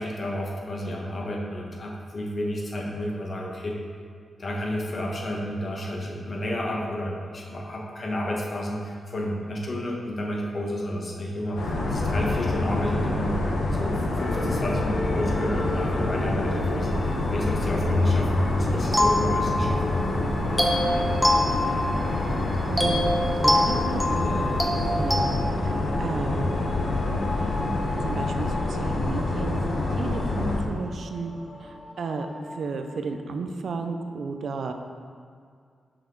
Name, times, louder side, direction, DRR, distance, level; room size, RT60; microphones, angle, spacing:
voice 1, 0.0-3.8 4.4-13.4 13.8-20.0, equal, 50° left, -1 dB, 1.0 m, -31 dB
sound 1, 11.6-30.6, left 2 dB, 80° left, 0.8 m, -26 dB
sound 2, 14.2-33.2, left 2 dB, 30° left, 0.4 m, -38 dB
sound 3, 18.9-20.0 20.6-22.3 22.8-25.4, left 1 dB, 10° left, 0.9 m, -25 dB
voice 2, 21.3-21.8 22.1-24.7 24.9-27.0 28.0-31.3 31.6-34.7, right 4 dB, 70° right, 6 dB, 0.4 m, -34 dB
5.7 x 4.8 x 3.8 m, 2.1 s
cardioid pair, 70°, 0 cm